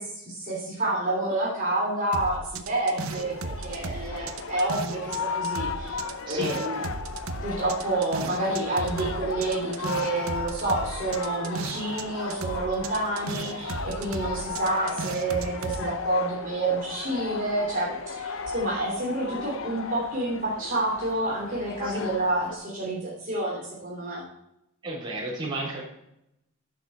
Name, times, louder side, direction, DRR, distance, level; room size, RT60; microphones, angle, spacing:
voice 1, 0.0-6.0 6.3-6.8 7.4-24.2, right 2 dB, 40° right, -5 dB, 3.1 m, -29 dB
sound 1, 2.1-5.2 5.4-12.0 12.3-15.8, right 3 dB, 90° right, 0.8 m, -35 dB
sound 2, 3.1-22.6, left 5 dB, 80° left, 0.8 m, -36 dB
voice 2, 6.2-6.8 21.8-22.1 24.8-25.8, right 2 dB, 25° right, -7 dB, 3.8 m, -33 dB
11.0 x 6.7 x 4.3 m, 0.81 s
head